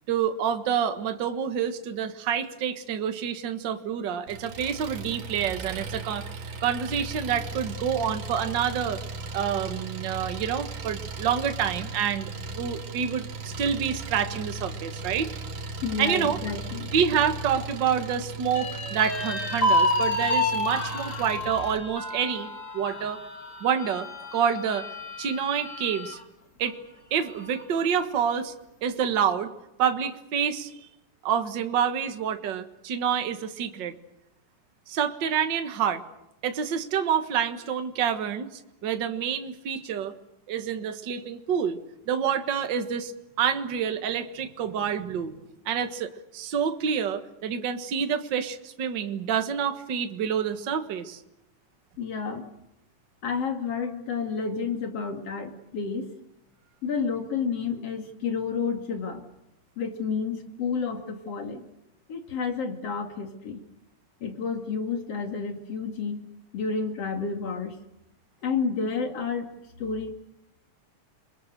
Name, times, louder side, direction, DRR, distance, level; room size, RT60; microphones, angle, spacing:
voice 1, 0.1-6.3 6.6-9.0 9.3-13.3 13.6-15.3 16.0-16.4 16.9-22.5 22.7-23.2 23.6-24.9 25.2-26.2 26.6-26.8 27.1-28.5 28.8-29.5 29.8-30.8 31.2-33.9 34.9-36.0 36.4-40.1 40.5-41.8 42.1-43.1 43.4-45.3 45.6-51.2, right 8 dB, 45° right, 8 dB, 1.7 m, -27 dB
Engine, 4.3-21.8, right 3 dB, 75° right, 3.5 m, -37 dB
voice 2, 15.8-16.9 52.0-52.5 53.2-56.1 56.8-59.2 59.8-61.7 62.1-63.6 64.2-66.2 66.5-67.8 68.4-69.5 69.8-70.1, left 5 dB, 50° left, 5 dB, 3.4 m, -30 dB
sound 1, 18.5-26.2 26.6-26.7 27.1-27.8, left 1 dB, 25° left, 2.3 m, -29 dB
29.0 x 22.5 x 6.7 m, 0.86 s
omnidirectional pair, 3.7 m